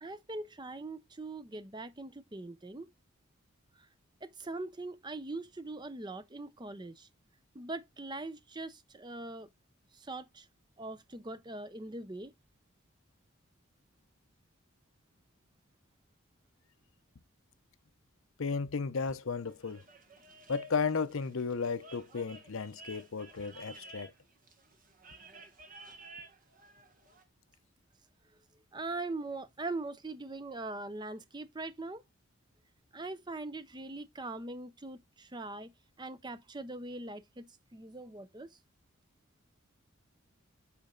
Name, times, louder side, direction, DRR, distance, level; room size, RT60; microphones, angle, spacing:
voice 1, 0.0-2.9 3.8-3.9 4.2-7.1 7.5-9.5 9.9-10.5 10.8-12.3 28.7-32.0 32.9-35.7 36.0-38.6, right 2 dB, 20° right, 0.6 m, -41 dB
voice 2, 18.4-19.8 20.5-24.1, left 5 dB, 65° left, 0.7 m, -34 dB
sound 1, 19.4-27.2, right 2 dB, 40° right, 1.5 m, -53 dB
8.4 x 4.3 x 3.8 m
head